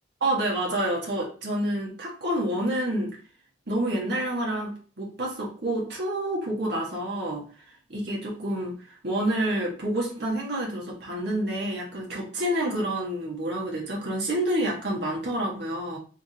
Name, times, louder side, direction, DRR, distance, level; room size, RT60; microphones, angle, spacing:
voice 1, 0.2-3.2 3.7-7.5 7.9-16.0, right 1 dB, 60° right, -3 dB, 1.5 m, -28 dB
3.7 x 3.2 x 2.8 m, 0.39 s
head